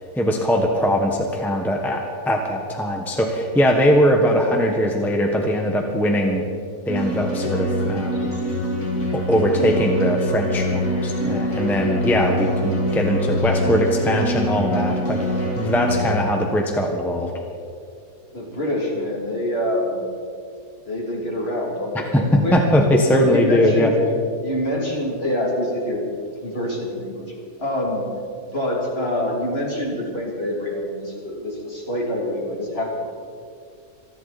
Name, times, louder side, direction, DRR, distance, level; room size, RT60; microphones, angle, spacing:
voice 1, 0.1-6.4 6.9-8.3 9.1-17.3 22.1-23.9, equal, ahead, 1 dB, 1.3 m, -20 dB
sound 1, 6.9-16.1, equal, 60° left, 3.1 m, -24 dB
voice 2, 18.2-20.0 20.9-22.6 23.1-23.9 24.4-26.0 26.4-27.3 27.6-28.1 28.5-33.1, left 1 dB, 40° left, -3 dB, 3.4 m, -26 dB
27.5 x 11.5 x 4.3 m, 2.3 s
omnidirectional pair, 1.6 m